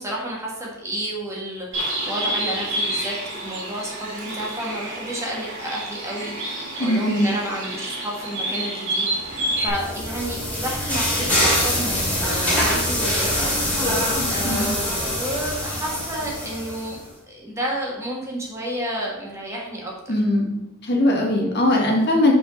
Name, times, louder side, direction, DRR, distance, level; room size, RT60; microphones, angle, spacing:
voice 1, 0.0-20.1, right 1 dB, 15° right, -3 dB, 1.6 m, -31 dB
Bird, 1.7-9.7, right 1 dB, 65° right, 2.0 m, -29 dB
voice 2, 6.8-7.3 14.1-14.7 20.1-20.5 20.8-22.3, left 1 dB, 55° left, 0 dB, 1.5 m, -20 dB
sound 1, 9.4-17.0, equal, 5° left, 2.5 m, -24 dB
5.0 x 4.9 x 5.1 m, 0.91 s
head